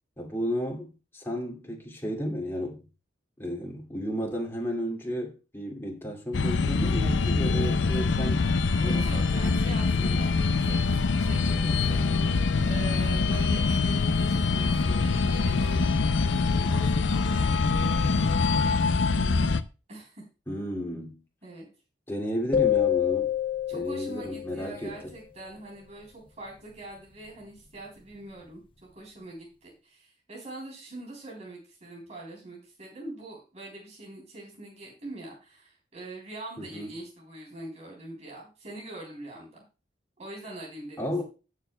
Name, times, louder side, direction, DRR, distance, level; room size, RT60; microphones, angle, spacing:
voice 1, 0.2-2.8 3.4-8.5 8.8-9.1 10.0-10.1 20.5-21.2 22.1-23.3 23.7-25.0 36.6-36.9 41.0-41.2, equal, 15° left, 2.4 m, -33 dB
sound 1, 6.3-19.6, left 4 dB, 80° left, 0.6 m, -24 dB
voice 2, 8.8-10.3 10.6-12.1 12.6-18.4 18.6-19.1 19.9-20.2 21.4-21.7 23.7-39.6 40.2-41.2, right 2 dB, 40° right, 3.6 m, -44 dB
sound 2, 22.5-24.8, left 10 dB, 30° left, 0.8 m, -27 dB
18.0 x 6.6 x 2.3 m
head